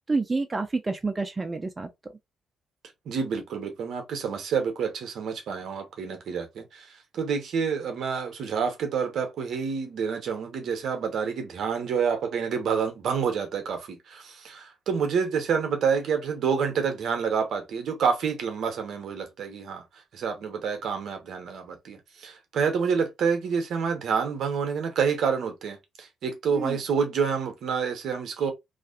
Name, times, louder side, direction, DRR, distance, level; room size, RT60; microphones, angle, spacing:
voice 1, 0.1-1.9 26.5-26.8, right 3 dB, 30° right, 0.4 m, -28 dB
voice 2, 3.1-19.8 20.1-28.5, right 6 dB, 65° right, 0.7 m, -28 dB
2.5 x 2.4 x 2.3 m
hypercardioid pair, 45°, 0 cm